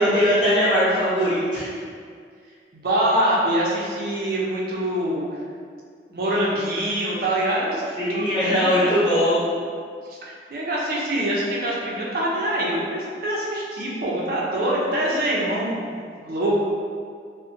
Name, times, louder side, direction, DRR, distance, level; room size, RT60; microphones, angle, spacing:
voice 1, 0.0-1.7 8.0-9.4, equal, 25° left, -13 dB, 1.0 m, -20 dB
voice 2, 2.7-5.2 6.1-9.0 10.1-10.2 10.5-16.6, right 1 dB, 55° right, -5 dB, 0.5 m, -24 dB
2.5 x 2.0 x 2.5 m, 2.1 s
head